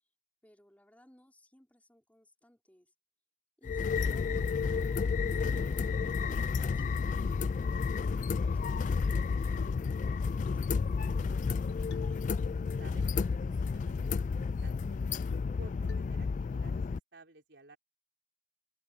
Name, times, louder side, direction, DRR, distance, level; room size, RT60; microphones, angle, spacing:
voice 1, 0.4-2.9 3.6-12.1, equal, 10° left, 3.7 m, -62 dB
sound 1, 3.6-17.0, left 5 dB, 45° left, 0.3 m, -31 dB
sound 2, 4.4-4.5 5.0-5.2 5.6-5.7 6.0-6.4 6.8-7.5 8.6-9.2 9.6-9.9 10.5-10.7 11.7-12.3 12.6-13.3 13.6-13.7 14.1-14.3 14.7-14.8 15.3-15.6 15.9-16.3, left 3 dB, 90° left, 1.1 m, -53 dB
voice 2, 12.8-15.0 15.6-17.8, right 2 dB, 80° right, 4.1 m, -56 dB
head